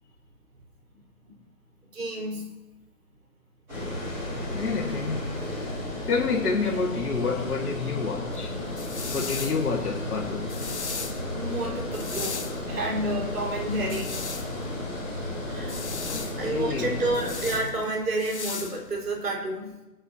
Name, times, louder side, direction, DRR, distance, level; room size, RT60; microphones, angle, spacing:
voice 1, 1.9-2.5 11.3-14.2 15.5-16.1 16.4-19.8, right 2 dB, 75° right, 4.8 m, -30 dB
Water, 3.7-17.6, left 1 dB, 5° right, 2.7 m, -33 dB
voice 2, 4.5-5.3 6.1-8.5 9.1-10.6 16.1-17.0, left 4 dB, 70° left, 2.0 m, -28 dB
sound 1, 8.3-19.3, left 5 dB, 45° left, 1.1 m, -38 dB
24.5 x 10.0 x 2.8 m
hypercardioid pair, 180°, 47 cm